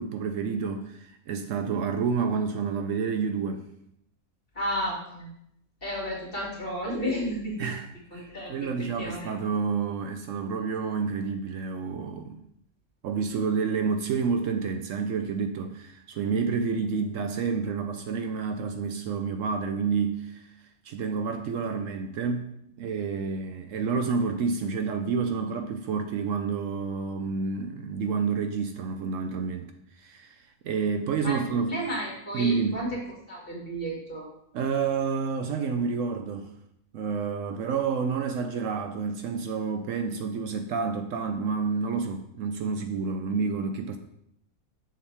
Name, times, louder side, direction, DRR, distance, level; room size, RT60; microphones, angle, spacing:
voice 1, 0.0-3.7 7.6-12.4 13.0-20.4 20.8-29.7 30.0-31.8 32.3-32.8 34.5-36.5 36.9-44.0, right 5 dB, 70° right, 0.9 m, -29 dB
voice 2, 4.5-5.3 5.8-7.7 8.1-8.7 9.0-9.3 31.2-31.4 31.7-33.0 33.3-34.3, equal, 40° left, 2.5 m, -32 dB
7.0 x 6.4 x 3.4 m
omnidirectional pair, 1.5 m